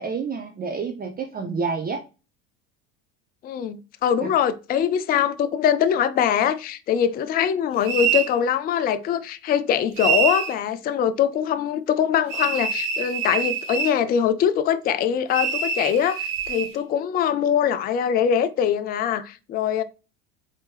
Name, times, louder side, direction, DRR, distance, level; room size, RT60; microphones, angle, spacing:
voice 1, 0.0-2.0 4.2-4.3, right 5 dB, 20° right, 0.6 m, -29 dB
voice 2, 3.4-19.8, left 8 dB, 25° left, 0.3 m, -23 dB
sound 1, 7.8-8.3 10.0-10.5 12.3-14.0 15.3-16.7, right 6 dB, 55° right, 1.5 m, -25 dB
4.0 x 3.6 x 3.2 m
hypercardioid pair, 80°, 42 cm